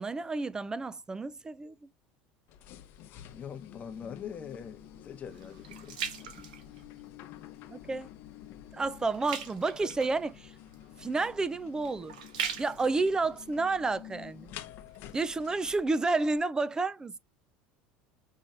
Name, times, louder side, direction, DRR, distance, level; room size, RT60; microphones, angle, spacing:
voice 1, 0.0-1.7 7.7-8.1 8.7-10.5 11.0-12.1 12.6-14.5 15.1-17.2, right 3 dB, 15° right, 0.5 m, -30 dB
sound 1, 2.5-16.4, left 12 dB, 60° left, 0.9 m, -50 dB
voice 2, 3.3-6.0, left 7 dB, 35° left, 1.0 m, -43 dB
sound 2, 4.1-7.3 7.8-8.1 8.4-14.4 14.9-15.0, right 7 dB, 85° right, 1.3 m, -41 dB
5.5 x 3.1 x 2.5 m
supercardioid pair, 100°, 4 cm